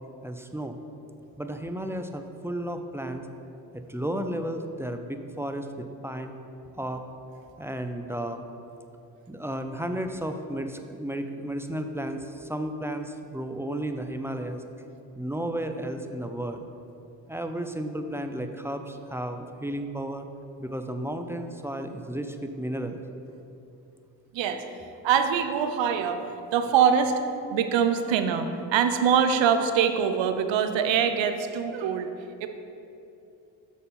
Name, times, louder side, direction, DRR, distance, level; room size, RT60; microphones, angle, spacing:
voice 1, 0.2-0.8 1.4-3.3 3.7-6.3 6.8-7.0 7.6-8.4 9.3-14.6 15.2-16.6 17.3-20.3 20.6-23.0, right 1 dB, 5° right, 6 dB, 0.4 m, -33 dB
voice 2, 24.3-24.6 25.0-26.2 26.5-27.2 27.5-32.1 32.4-32.5, right 7 dB, 70° right, 8 dB, 0.7 m, -23 dB
6.8 x 4.2 x 5.5 m, 2.8 s
supercardioid pair, 55°, 46 cm